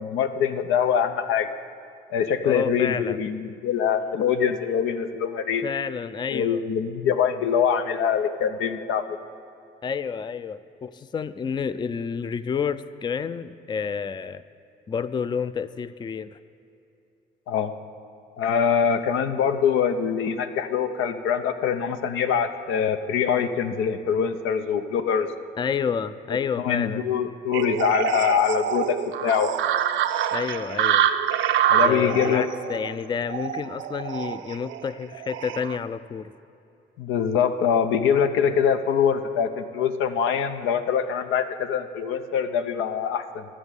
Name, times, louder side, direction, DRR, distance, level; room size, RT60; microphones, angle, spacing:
voice 1, 0.0-1.5 2.1-5.7 6.3-9.0 17.5-17.7 18.4-25.3 26.6-29.5 31.7-32.5 37.0-43.5, left 7 dB, 90° left, 9 dB, 0.7 m, -24 dB
voice 2, 2.4-3.2 5.6-6.6 9.8-14.4 14.9-16.4 25.6-27.0 30.3-31.1 31.8-36.3, left 6 dB, 25° left, 14 dB, 0.3 m, -29 dB
sound 1, 27.5-35.8, right 10 dB, 75° right, 0.6 m, -26 dB
12.5 x 6.3 x 8.2 m, 2.8 s
cardioid pair, 90°, 20 cm